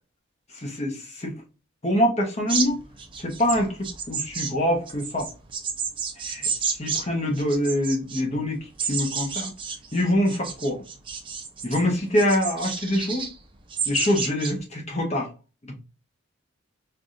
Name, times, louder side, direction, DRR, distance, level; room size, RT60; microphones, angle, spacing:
voice 1, 0.5-1.3 1.8-2.8 3.2-5.3 6.2-6.5 6.8-9.5 9.9-10.8 11.6-13.3 13.9-15.3, left 1 dB, 30° left, 0.9 m, -25 dB
sound 1, 2.5-7.0 7.3-8.2 8.8-11.8 12.2-13.3 13.7-14.5, right 6 dB, 25° right, 0.5 m, -30 dB
4.7 x 2.4 x 2.5 m
head